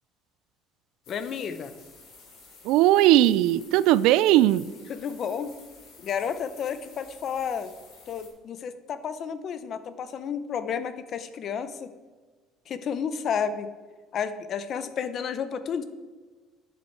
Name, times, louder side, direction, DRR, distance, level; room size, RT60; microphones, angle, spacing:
sound 1, 1.0-8.3, left 4 dB, 60° left, 3.3 m, -51 dB
voice 1, 1.1-1.7 4.9-5.5 6.0-7.7 8.1-11.9 12.7-13.7 14.1-15.8, left 7 dB, 35° left, 12 dB, 0.6 m, -31 dB
voice 2, 2.7-4.7, right 14 dB, 70° right, 19 dB, 0.3 m, -19 dB
9.8 x 8.1 x 4.5 m, 1.4 s
cardioid pair, 170°, 0 cm